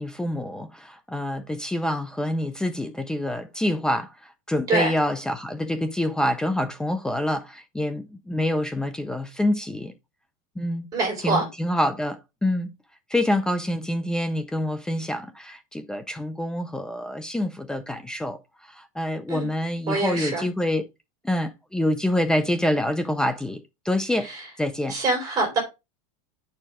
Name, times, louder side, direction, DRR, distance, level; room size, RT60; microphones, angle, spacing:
voice 1, 0.0-9.9 10.6-10.9 11.2-12.7 13.1-18.4 18.7-20.8 21.2-24.3 24.6-25.0, left 1 dB, 5° left, 0.4 m, -26 dB
voice 2, 10.9-11.5 19.3-19.5 19.9-20.4 24.2-24.4 24.9-25.6, right 2 dB, 20° right, 3.3 m, -25 dB
9.9 x 4.6 x 3.5 m
supercardioid pair, 170°, 18 cm